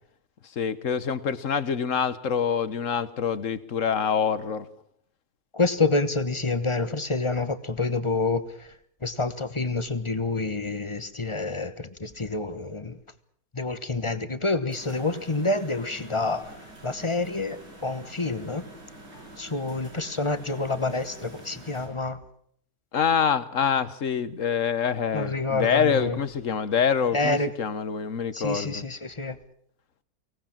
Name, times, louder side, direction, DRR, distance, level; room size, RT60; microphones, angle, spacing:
voice 1, 0.6-4.7 22.9-28.7, left 7 dB, 55° left, 1.4 m, -25 dB
voice 2, 5.5-8.4 9.0-13.0 13.5-16.6 16.8-18.6 19.4-22.2 25.1-26.2 27.1-27.5 28.3-29.4, left 3 dB, 20° left, 1.1 m, -28 dB
sound 1, 14.7-21.9, right 1 dB, 85° right, 6.8 m, -47 dB
24.0 x 18.5 x 7.4 m
omnidirectional pair, 1.7 m